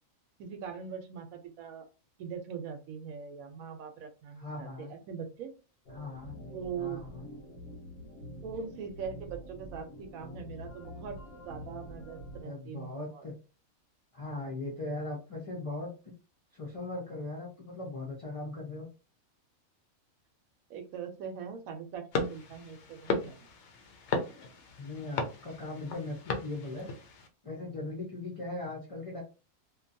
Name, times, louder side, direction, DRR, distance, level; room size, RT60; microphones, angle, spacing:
voice 1, 0.4-1.8 2.2-5.5 6.5-7.0 8.4-11.2 11.4-13.2 20.7-23.4, right 6 dB, 85° right, 6 dB, 1.0 m, -41 dB
voice 2, 4.4-4.9 5.9-6.4 6.8-7.3 12.4-13.3 14.1-15.9 16.5-18.9 24.8-26.9 27.4-29.2, left 2 dB, 40° left, -3 dB, 0.5 m, -39 dB
sound 1, 5.9-12.4, equal, 85° left, 1.2 m, -46 dB
sound 2, 22.1-27.3, left 3 dB, 65° left, 0.8 m, -36 dB
2.7 x 2.2 x 2.6 m, 0.33 s
omnidirectional pair, 1.4 m